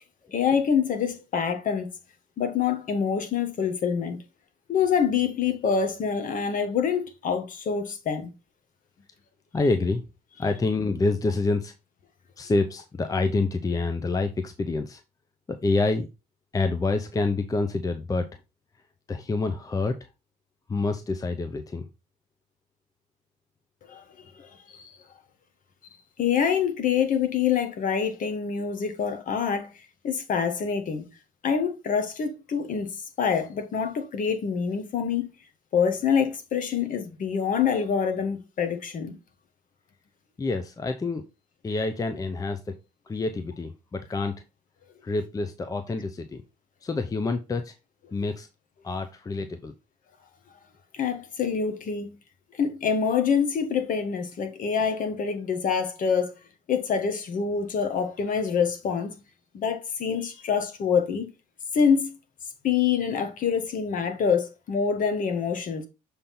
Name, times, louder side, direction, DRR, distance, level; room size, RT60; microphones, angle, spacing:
voice 1, 0.3-1.9 2.4-4.2 4.7-8.3 23.9-24.0 24.4-24.9 26.2-29.7 30.0-31.1 31.4-32.9 33.2-35.3 35.7-39.2 50.9-52.1 52.6-56.3 56.7-59.1 59.5-61.3 61.7-62.2 62.6-65.9, left 6 dB, 50° left, 1.4 m, -26 dB
voice 2, 9.5-10.0 10.4-11.7 12.4-15.0 15.6-16.1 16.5-18.3 19.1-20.0 20.7-21.8 40.4-41.3 41.6-42.7 43.1-44.3 45.0-46.4 46.8-47.7 48.1-48.5 48.8-49.7, left 3 dB, 20° left, 0.7 m, -27 dB
6.7 x 3.8 x 4.2 m
cardioid pair, 110°, 17 cm